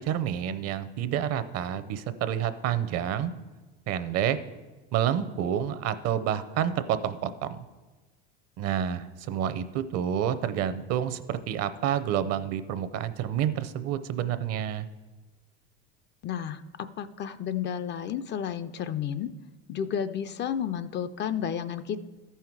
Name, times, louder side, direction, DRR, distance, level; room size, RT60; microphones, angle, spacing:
voice 1, 0.0-3.3 3.9-4.4 4.9-7.6 8.6-14.9, right 10 dB, 50° right, 12 dB, 0.7 m, -29 dB
voice 2, 16.2-19.3 19.7-22.0, left 8 dB, 35° left, 12 dB, 0.4 m, -32 dB
13.5 x 5.7 x 4.6 m, 1.3 s
supercardioid pair, 110°, 32 cm